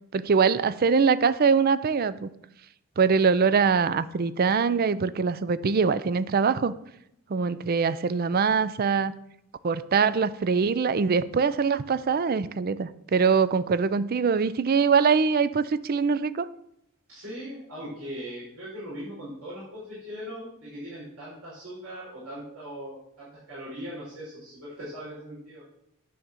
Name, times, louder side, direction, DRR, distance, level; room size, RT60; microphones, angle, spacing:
voice 1, 0.1-2.3 3.0-6.7 7.3-9.1 9.6-16.5, right 5 dB, 45° right, 16 dB, 0.4 m, -23 dB
voice 2, 17.1-25.6, equal, 85° right, -9 dB, 4.8 m, -40 dB
9.3 x 5.6 x 7.5 m, 0.77 s
head